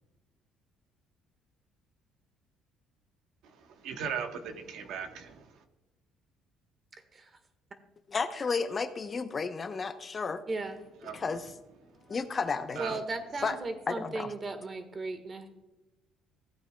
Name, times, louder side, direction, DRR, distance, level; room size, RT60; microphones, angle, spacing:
voice 1, 3.6-5.5 11.0-11.2 12.8-13.0 13.4-13.5, right 7 dB, 70° right, 6 dB, 1.1 m, -38 dB
voice 2, 8.1-10.4 11.1-11.5 12.1-13.0 13.4-13.6 13.9-14.3, left 4 dB, 30° left, 9 dB, 0.7 m, -32 dB
voice 3, 12.8-15.5, right 3 dB, 30° right, 8 dB, 1.4 m, -36 dB
16.0 x 8.7 x 2.2 m, 1.0 s
cardioid pair, 110°, 0 cm